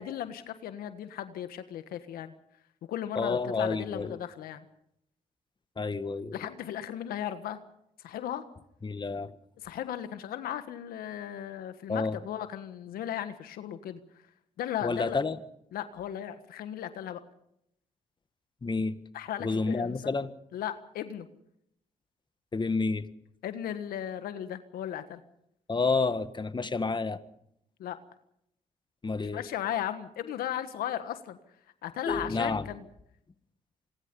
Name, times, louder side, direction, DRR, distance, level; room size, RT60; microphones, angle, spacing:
voice 1, 0.0-2.3 2.9-4.7 6.3-7.6 8.0-8.4 9.6-14.0 14.6-15.2 15.7-17.2 19.1-20.1 20.5-21.3 23.4-25.2 27.8-28.0 29.3-31.4 31.8-32.9, left 10 dB, 85° left, 10 dB, 1.5 m, -36 dB
voice 2, 3.1-4.2 5.8-6.4 8.8-9.3 11.9-12.2 14.8-15.4 18.6-19.0 19.4-20.3 22.5-23.1 25.7-27.2 29.0-29.4 32.1-32.6, left 4 dB, 30° left, 12 dB, 1.7 m, -29 dB
26.5 x 20.5 x 5.4 m, 0.75 s
supercardioid pair, 55°, 15 cm